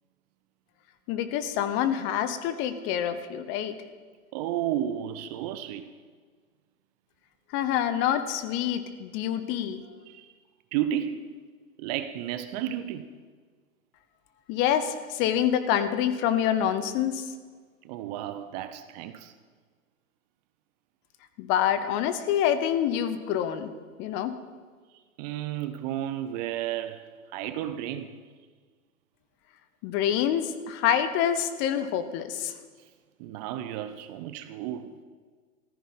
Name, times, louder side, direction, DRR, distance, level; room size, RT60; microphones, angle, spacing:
voice 1, 1.1-3.8 7.5-9.8 14.5-17.3 21.4-23.7 24.0-24.3 29.8-32.5, left 10 dB, 30° left, 1.0 m, -26 dB
voice 2, 4.3-5.9 9.4-9.5 10.1-10.3 10.7-11.4 11.8-13.1 17.8-19.3 25.2-28.2 33.2-34.9, right 11 dB, 30° right, 0.8 m, -32 dB
14.5 x 14.5 x 5.6 m
figure-of-eight pair, 115°, 42 cm